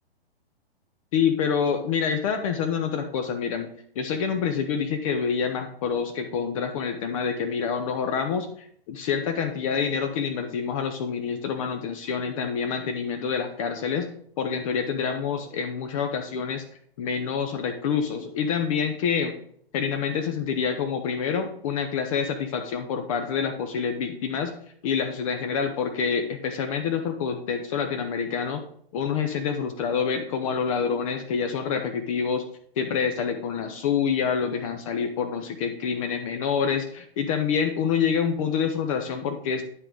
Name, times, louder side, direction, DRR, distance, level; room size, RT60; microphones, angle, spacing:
voice 1, 1.1-3.7 4.0-8.5 8.9-14.1 14.4-16.6 17.0-19.4 19.7-24.5 24.8-28.6 28.9-32.4 32.8-39.6, left 6 dB, 35° left, 7 dB, 0.6 m, -27 dB
9.8 x 3.8 x 4.7 m, 0.63 s
hypercardioid pair, 130°, 31 cm